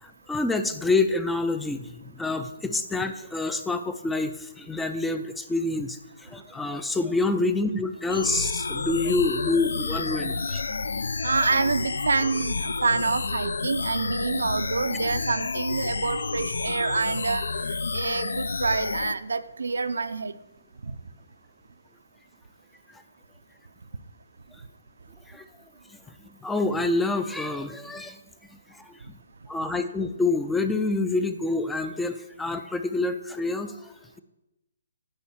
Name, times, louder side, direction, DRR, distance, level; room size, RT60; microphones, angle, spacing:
voice 1, 0.0-10.7 22.9-23.0 25.3-25.5 25.9-26.0 26.4-28.2 28.7-29.2 29.5-34.2, left 3 dB, 5° left, 9 dB, 0.3 m, -27 dB
sound 1, 8.1-19.1, left 4 dB, 85° left, 0.3 m, -30 dB
voice 2, 11.2-20.3 20.8-20.9, right 4 dB, 90° right, 11 dB, 0.5 m, -27 dB
8.8 x 4.2 x 7.1 m, 0.97 s
hypercardioid pair, 165°, 0 cm